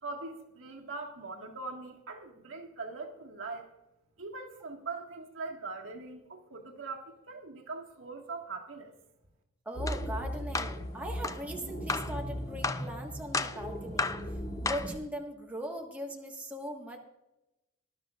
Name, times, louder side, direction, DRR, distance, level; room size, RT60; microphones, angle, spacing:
voice 1, 0.0-3.7 4.2-8.9, right 3 dB, 70° right, 1 dB, 1.7 m, -41 dB
voice 2, 9.6-14.1 14.6-17.0, equal, 5° right, -1 dB, 1.4 m, -39 dB
sound 1, 9.7-15.0, equal, 35° left, 2.6 m, -38 dB
sound 2, 9.9-10.0 10.5-10.8 11.2-11.4 11.9-12.1 12.6-12.9 13.3-13.6 14.0-14.2 14.7-14.9, left 4 dB, 15° left, 0.4 m, -32 dB
20.0 x 12.0 x 2.4 m, 0.95 s
head